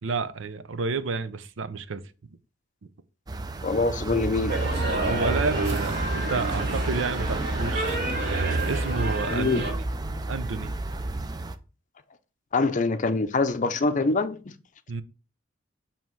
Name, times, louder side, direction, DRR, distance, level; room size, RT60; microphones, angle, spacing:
voice 1, 0.0-2.0 5.0-8.0 8.3-9.7 10.3-10.7 14.9-15.0, right 4 dB, 85° right, 0.6 m, -31 dB
sound 1, 3.3-11.6, right 2 dB, 20° right, 0.4 m, -30 dB
voice 2, 3.6-4.5 9.3-9.6 12.5-14.5, left 3 dB, 40° left, 0.5 m, -24 dB
sound 2, 4.5-9.7, right 2 dB, 55° right, 1.9 m, -30 dB
7.4 x 2.9 x 4.6 m
head